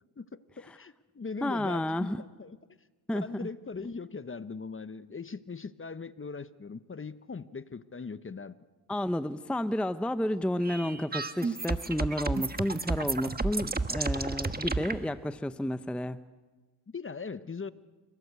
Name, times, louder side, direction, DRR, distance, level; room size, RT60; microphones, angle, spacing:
voice 1, 0.2-2.6 3.1-8.5 16.9-17.7, left 4 dB, 25° left, 14 dB, 1.0 m, -40 dB
voice 2, 1.4-2.2 3.1-3.5 8.9-16.2, left 1 dB, ahead, 12 dB, 0.7 m, -31 dB
sound 1, 10.6-15.0, right 3 dB, 20° right, 1.4 m, -32 dB
29.0 x 18.5 x 8.3 m, 1.3 s
cardioid pair, 75°, 48 cm